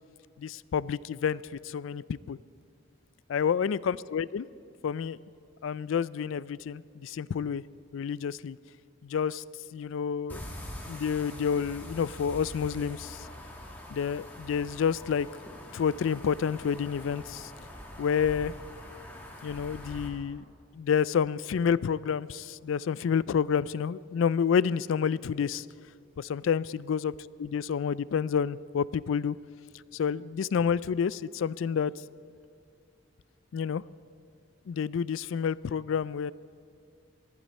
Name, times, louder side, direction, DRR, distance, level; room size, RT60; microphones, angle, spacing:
voice 1, 0.4-2.4 3.3-4.5 4.8-5.2 5.6-7.6 7.9-8.6 9.0-9.4 9.7-10.4 10.9-13.3 13.9-15.3 15.7-17.5 18.0-18.5 19.4-20.4 20.7-25.7 26.2-27.1 27.4-29.4 29.9-31.9 33.5-33.8 34.7-36.3, left 7 dB, 75° left, 20 dB, 0.3 m, -29 dB
sound 1, 10.3-20.1, left 1 dB, 10° left, 1.8 m, -44 dB
20.0 x 14.5 x 4.2 m, 2.2 s
head